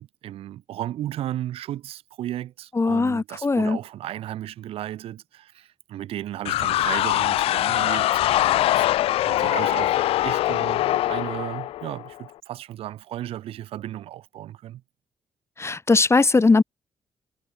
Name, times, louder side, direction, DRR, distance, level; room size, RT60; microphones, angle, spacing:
voice 1, 0.0-8.9 9.2-14.8, right 13 dB, 85° right, 3.2 m, -35 dB
voice 2, 2.8-3.8 15.6-16.6, left 3 dB, 30° left, 1.4 m, -19 dB
sound 1, 6.4-12.2, left 14 dB, 90° left, 2.4 m, -23 dB
cardioid pair, 65°, 10 cm